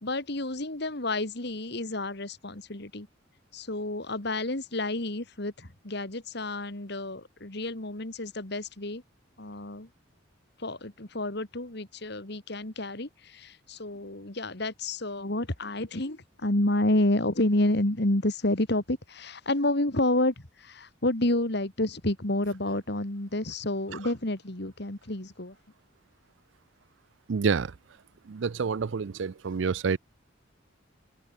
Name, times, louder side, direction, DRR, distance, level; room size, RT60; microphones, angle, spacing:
voice 1, 0.0-3.1 3.5-9.0 9.4-9.9 10.6-25.6, left 1 dB, 55° left, 2.3 m, -29 dB
voice 2, 27.3-27.7 28.3-30.0, right 5 dB, 65° right, 0.5 m, -28 dB
open air
head